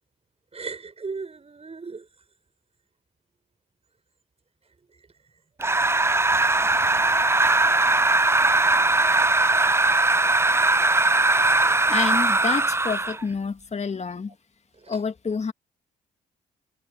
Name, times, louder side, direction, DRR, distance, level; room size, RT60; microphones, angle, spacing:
voice 1, 0.5-2.1 10.8-11.1 11.6-11.9 14.8-15.0, right 4 dB, 35° right, 5.4 m, -37 dB
sound 1, 5.6-13.2, right 2 dB, 15° right, 0.6 m, -20 dB
voice 2, 11.9-14.4 14.9-15.5, left 5 dB, 35° left, 2.3 m, -28 dB
hypercardioid pair, 45°, 19 cm